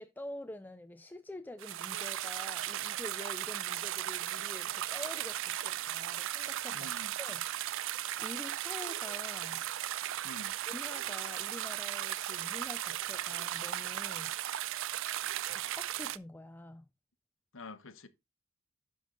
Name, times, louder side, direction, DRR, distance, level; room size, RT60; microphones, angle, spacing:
voice 1, 0.0-6.9 7.2-7.4 8.2-9.6 10.1-10.3 10.7-14.3 15.5-16.9, left 1 dB, 10° left, 0.4 m, -47 dB
sound 1, 1.6-16.2, right 13 dB, 65° right, 0.4 m, -36 dB
voice 2, 6.7-7.1 10.2-10.6 17.5-18.1, left 2 dB, 65° left, 1.0 m, -48 dB
11.5 x 5.2 x 3.8 m
head